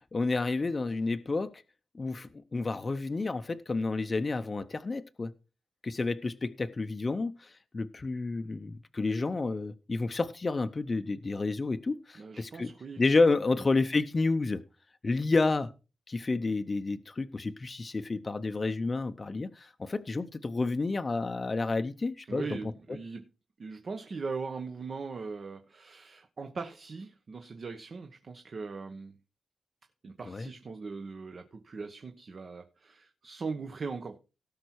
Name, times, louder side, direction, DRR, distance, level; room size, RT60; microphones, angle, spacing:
voice 1, 0.1-1.5 1.9-5.3 5.8-12.7 13.0-14.6 15.0-15.7 16.1-22.6 30.3-30.5, left 3 dB, 30° left, 0.7 m, -30 dB
voice 2, 12.2-13.0 22.3-23.3 23.6-29.1 30.0-34.2, right 4 dB, 50° right, 1.2 m, -40 dB
17.5 x 5.9 x 4.6 m
wide cardioid pair, 125°, 0 cm